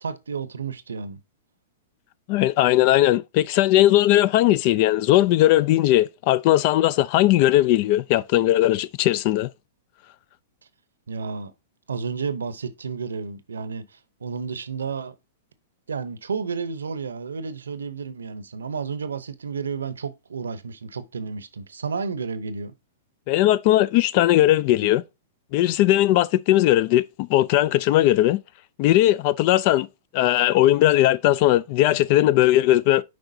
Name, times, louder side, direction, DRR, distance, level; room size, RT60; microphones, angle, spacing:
voice 1, 0.0-1.2 11.1-11.5 11.9-13.9 14.2-15.1 15.9-22.7, right 5 dB, 85° right, 0.7 m, -31 dB
voice 2, 2.3-9.5 23.3-25.0 25.5-28.4 28.8-29.9 30.1-33.0, left 14 dB, 50° left, 0.4 m, -18 dB
7.6 x 4.9 x 2.7 m
hypercardioid pair, 110°, 0 cm